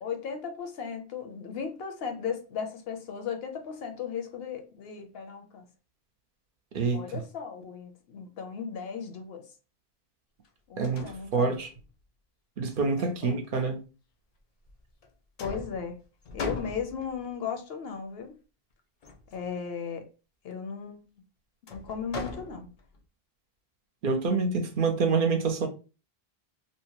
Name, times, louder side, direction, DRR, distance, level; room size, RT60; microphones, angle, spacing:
voice 1, 0.0-5.7 6.9-9.5 10.7-11.6 13.0-13.4 15.4-16.0 16.3-18.4 19.3-20.0 20.4-21.0 21.7-22.7, left 6 dB, 75° left, 0.8 m, -36 dB
sound 1, 10.4-10.5 10.8-11.9 12.7-13.7 14.6-15.1 15.4-17.3 19.0-19.5 21.7-23.0, left 3 dB, 50° left, 0.5 m, -40 dB
voice 2, 10.8-11.7 12.6-13.8 24.0-25.7, right 4 dB, 60° right, 0.7 m, -26 dB
2.7 x 2.1 x 2.9 m
omnidirectional pair, 1.0 m